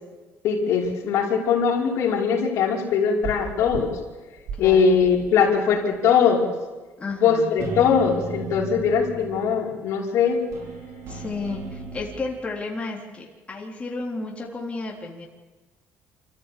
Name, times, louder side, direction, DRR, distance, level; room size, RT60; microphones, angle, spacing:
voice 1, 0.4-3.9 4.6-6.5 7.2-10.4, left 6 dB, 70° left, -2 dB, 5.5 m, -21 dB
sound 1, 3.2-3.8 4.4-5.3 5.7-5.8 7.6-9.7 10.5-12.4, right 4 dB, 70° right, 5.6 m, -35 dB
voice 2, 4.6-5.0 7.0-7.5 11.1-15.3, left 3 dB, 25° left, -2 dB, 3.8 m, -32 dB
27.0 x 15.0 x 8.6 m, 1.2 s
cardioid pair, 120°, 5 cm